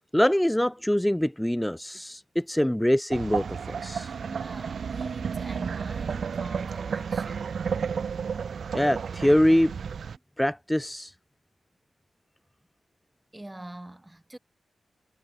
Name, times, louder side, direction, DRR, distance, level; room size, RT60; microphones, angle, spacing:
voice 1, 0.1-4.1 8.7-9.7 10.4-11.1, equal, 5° left, 0.7 m, -24 dB
sound 1, 3.1-10.2, right 6 dB, 70° right, 1.8 m, -32 dB
voice 2, 4.2-7.6 10.1-10.2 13.3-14.4, right 1 dB, 15° right, 5.3 m, -44 dB
wide cardioid pair, 105°, 0 cm